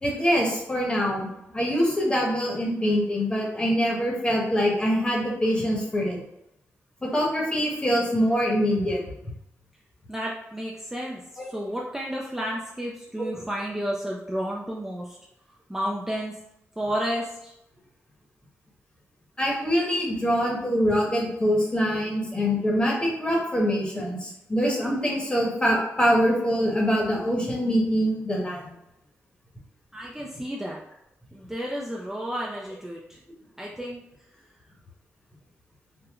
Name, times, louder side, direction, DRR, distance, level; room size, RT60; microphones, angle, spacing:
voice 1, 0.0-6.2 7.0-9.0 11.4-11.5 13.2-13.3 19.4-28.7, equal, 20° left, -2 dB, 1.0 m, -24 dB
voice 2, 10.1-15.2 15.7-16.3 16.8-17.5 29.9-30.8 31.3-33.2 33.6-34.0, equal, 10° right, -3 dB, 0.4 m, -32 dB
3.6 x 2.1 x 3.0 m, 0.83 s
cardioid pair, 95°, 5 cm